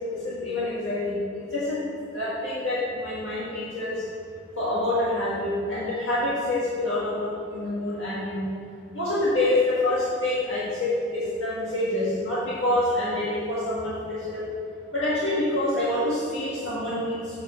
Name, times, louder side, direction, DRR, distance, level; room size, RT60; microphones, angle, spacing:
voice 1, 0.0-1.8 2.1-4.0 4.6-8.4 8.9-14.5 14.9-17.4, left 1 dB, 80° left, -9 dB, 1.7 m, -27 dB
7.9 x 4.9 x 6.1 m, 2.3 s
head